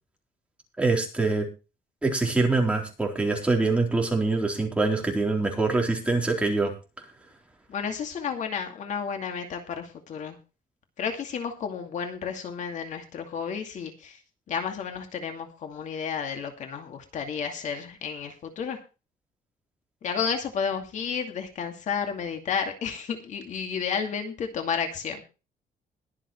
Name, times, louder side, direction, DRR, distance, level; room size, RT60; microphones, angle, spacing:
voice 1, 0.8-1.5 2.0-6.7, right 3 dB, 10° right, 1 dB, 3.9 m, -24 dB
voice 2, 7.7-10.4 11.0-14.2 14.5-18.8 20.0-25.2, left 6 dB, 55° left, 5 dB, 2.4 m, -32 dB
22.0 x 7.5 x 3.2 m, 0.31 s
cardioid pair, 155°, 15 cm